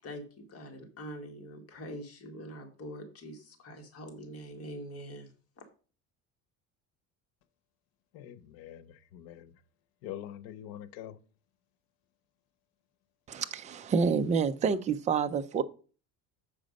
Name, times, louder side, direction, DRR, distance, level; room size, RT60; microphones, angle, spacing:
voice 1, 0.0-5.3, equal, 40° left, 1.8 m, -44 dB
voice 2, 8.1-9.6 10.0-11.2, left 11 dB, 90° left, 0.9 m, -44 dB
voice 3, 13.3-15.6, right 5 dB, 20° right, 0.4 m, -28 dB
7.5 x 5.0 x 5.2 m
cardioid pair, 155°, 37 cm